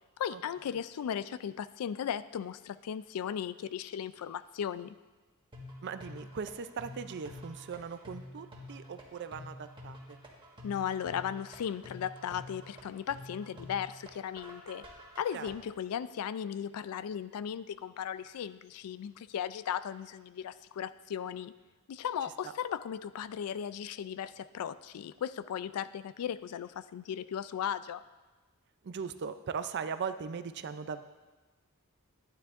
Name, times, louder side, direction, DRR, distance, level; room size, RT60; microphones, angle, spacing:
voice 1, 0.2-5.0 10.6-14.8 15.2-21.5 21.9-28.0, left 8 dB, 80° left, 15 dB, 0.3 m, -36 dB
sound 1, 5.5-15.5, left 1 dB, 20° right, 1.4 m, -48 dB
voice 2, 5.8-10.2 15.3-15.5 28.8-31.0, right 6 dB, 50° right, 10 dB, 0.4 m, -39 dB
12.5 x 9.5 x 2.5 m, 1.2 s
head